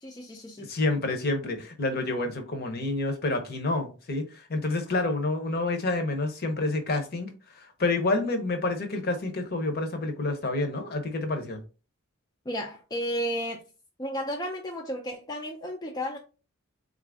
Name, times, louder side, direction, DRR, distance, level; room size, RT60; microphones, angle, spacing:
voice 1, 0.0-0.7 12.5-13.6 14.0-16.2, equal, 15° left, 0.4 m, -33 dB
voice 2, 0.7-7.3 7.6-11.6, left 2 dB, 45° left, 0.8 m, -28 dB
4.0 x 2.5 x 3.4 m
head